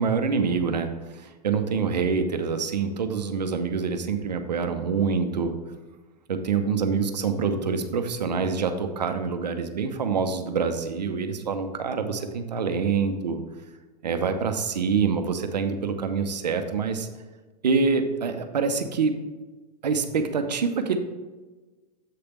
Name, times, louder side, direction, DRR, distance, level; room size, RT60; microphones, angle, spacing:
voice 1, 0.0-5.6 6.3-13.4 14.0-17.1 17.6-19.2 19.8-21.0, right 5 dB, 90° right, 7 dB, 0.8 m, -26 dB
7.7 x 3.4 x 5.9 m, 1.2 s
hypercardioid pair, 110°, 21 cm